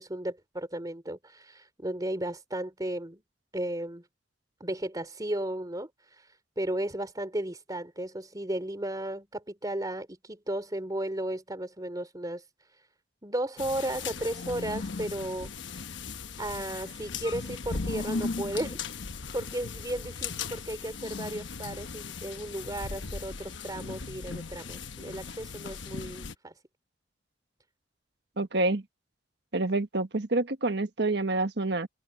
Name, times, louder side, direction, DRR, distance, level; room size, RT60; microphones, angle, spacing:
voice 1, 0.0-3.2 3.5-4.1 4.6-12.9 13.2-15.8 16.4-18.9 19.3-26.5, right 1 dB, 20° right, 3.2 m, -35 dB
sound 1, 13.6-26.3, left 4 dB, 75° left, 1.0 m, -37 dB
voice 2, 28.4-28.8 29.5-31.9, right 2 dB, 65° right, 1.4 m, -27 dB
head